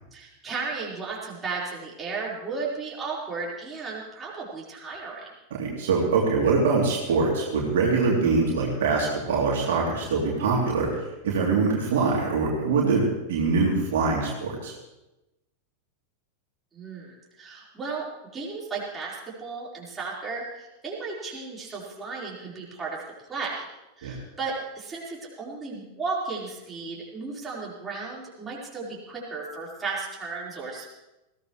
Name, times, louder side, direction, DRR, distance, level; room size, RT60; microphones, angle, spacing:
voice 1, 0.1-5.3 16.7-18.1 18.3-23.0 23.3-23.6 24.0-30.9, right 4 dB, 15° right, -5 dB, 4.5 m, -34 dB
voice 2, 5.6-10.9 11.2-14.7 24.0-24.1, right 4 dB, 55° right, -3 dB, 3.1 m, -23 dB
20.5 x 16.0 x 3.2 m, 0.99 s
figure-of-eight pair, 90°, 0 cm